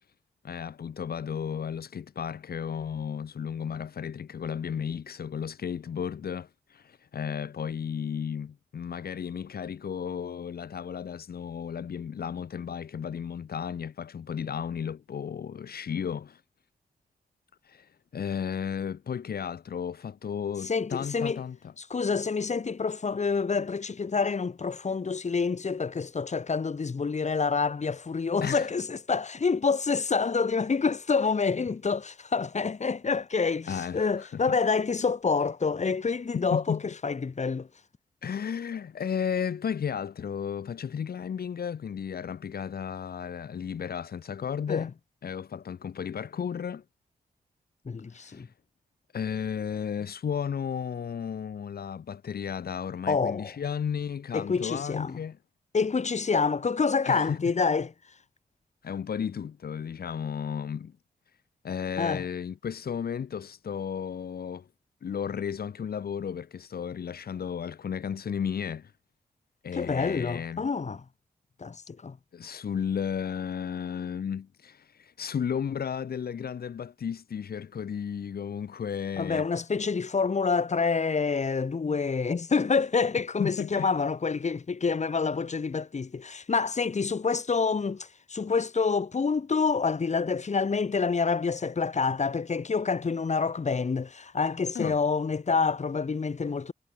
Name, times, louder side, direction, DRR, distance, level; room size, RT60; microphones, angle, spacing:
voice 1, 0.4-16.4 17.6-21.7 28.4-28.7 33.7-34.4 36.5-36.8 38.2-44.9 45.2-46.8 48.1-48.5 49.1-55.4 57.0-57.4 58.8-60.9 61.6-64.7 65.0-68.9 69.6-70.6 72.3-79.5 83.4-83.9 94.7-94.9, left 7 dB, 75° left, 5.1 m, -34 dB
voice 2, 20.6-21.4 21.8-37.7 44.7-44.8 47.8-48.5 53.1-53.5 54.3-55.2 55.7-57.9 62.0-62.2 69.7-71.0 71.6-72.2 79.2-96.7, left 5 dB, 45° left, 7.9 m, -27 dB
wide cardioid pair, 95°, 16 cm